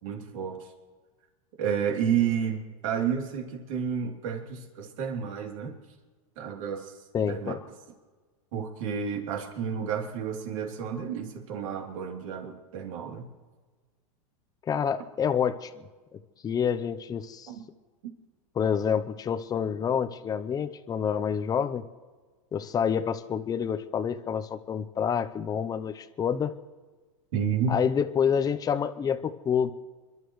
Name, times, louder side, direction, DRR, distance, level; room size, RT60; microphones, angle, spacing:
voice 1, 0.0-0.7 1.6-5.8 6.4-7.6 8.5-13.3 17.5-17.6 27.3-27.8, right 7 dB, 65° right, 1 dB, 3.2 m, -31 dB
voice 2, 7.1-7.6 14.7-15.8 16.4-17.5 18.6-21.8 22.5-26.5 27.7-29.7, left 7 dB, 20° left, 10 dB, 0.7 m, -28 dB
28.5 x 12.0 x 3.2 m, 1.4 s
hypercardioid pair, 125°, 18 cm